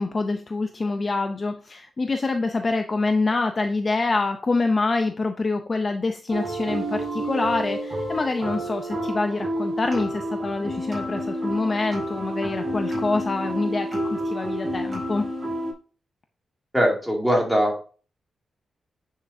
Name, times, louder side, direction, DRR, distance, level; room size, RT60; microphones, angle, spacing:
voice 1, 0.0-15.3, left 3 dB, 30° left, 6 dB, 0.6 m, -26 dB
sound 1, 6.3-15.7, right 1 dB, 25° right, 3.9 m, -29 dB
voice 2, 16.7-17.8, equal, ahead, -2 dB, 2.4 m, -21 dB
10.0 x 6.5 x 2.7 m, 0.38 s
wide cardioid pair, 165°, 0 cm